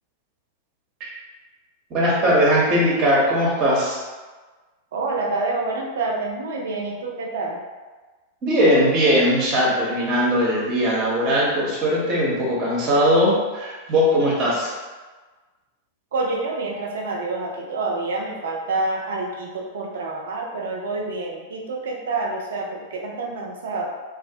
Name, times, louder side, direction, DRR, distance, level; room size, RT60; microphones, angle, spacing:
voice 1, 1.9-4.0 8.4-14.7, equal, 40° right, -4 dB, 0.8 m, -19 dB
voice 2, 4.9-7.6 16.1-23.9, right 3 dB, 70° right, 0 dB, 0.4 m, -27 dB
2.3 x 2.0 x 2.6 m, 1.3 s
hypercardioid pair, 95°, 0 cm